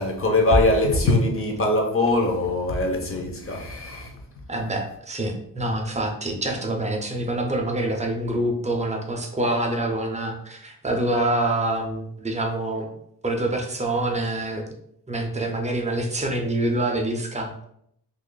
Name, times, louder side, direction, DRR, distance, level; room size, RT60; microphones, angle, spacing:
voice 1, 0.0-4.1, left 2 dB, 30° left, 0.6 m, -22 dB
voice 2, 4.5-12.9 13.2-14.7 15.1-17.6, right 1 dB, 20° right, 0.4 m, -26 dB
2.9 x 2.4 x 3.7 m
wide cardioid pair, 175°, 41 cm